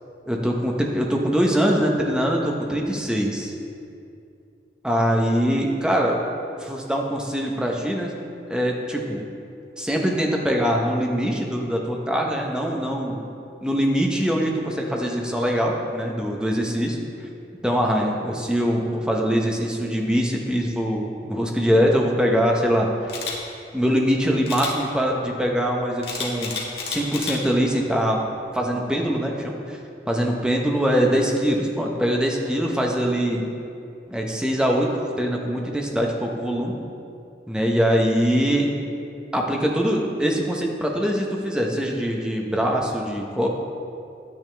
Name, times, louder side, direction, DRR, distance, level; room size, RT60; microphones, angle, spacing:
voice 1, 0.3-3.5 4.8-6.2 6.6-8.1 8.5-9.2 9.8-13.2 13.6-17.0 17.6-23.1 23.7-26.5 26.8-28.2 28.5-29.8 30.1-33.4 34.1-34.9 35.2-36.7 37.5-38.7 39.3-43.5, equal, 5° right, -1 dB, 0.8 m, -23 dB
Camera, 23.1-23.3 24.5-24.7 26.0-27.4 27.9-28.1, left 5 dB, 65° left, 1.6 m, -30 dB
10.5 x 9.1 x 3.4 m, 2.5 s
head